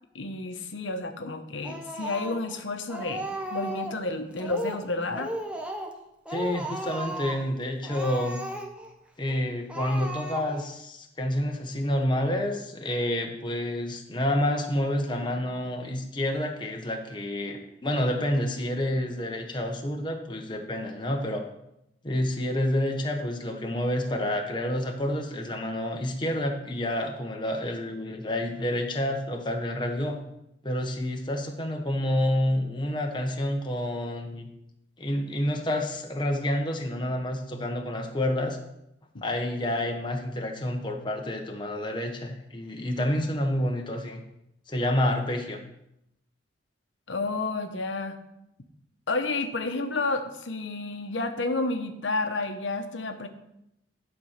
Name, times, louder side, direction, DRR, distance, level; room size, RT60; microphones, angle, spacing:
voice 1, 0.1-5.3 39.1-39.2 47.1-48.2 49.1-53.3, left 3 dB, 85° left, 6 dB, 0.9 m, -30 dB
Speech, 1.6-2.6 2.9-4.0 4.4-4.9 5.1-6.0 6.3-7.5 7.8-8.9 9.3-9.4 9.7-10.7, right 1 dB, 5° right, 1.0 m, -35 dB
voice 2, 6.3-8.4 9.2-21.4 22.0-30.2 30.6-34.5 35.0-38.6 39.2-44.2 44.7-45.6, left 1 dB, 25° left, 2 dB, 1.1 m, -29 dB
11.5 x 4.4 x 6.6 m, 0.84 s
head